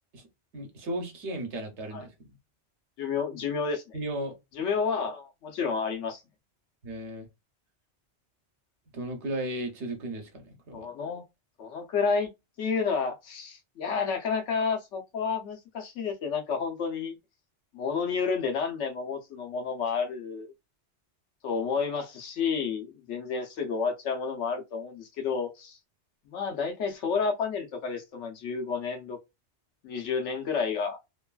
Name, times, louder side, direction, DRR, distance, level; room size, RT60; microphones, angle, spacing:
voice 1, 0.5-2.4 3.9-4.3 6.8-7.3 8.9-10.9, right 1 dB, 75° right, 1.2 m, -35 dB
voice 2, 3.0-4.0 4.5-6.2 10.7-11.2 11.6-12.3 12.6-17.2 17.7-20.5 21.4-25.8 26.3-29.2 29.8-31.0, left 5 dB, 90° left, 1.1 m, -30 dB
3.0 x 2.3 x 2.3 m
omnidirectional pair, 1.2 m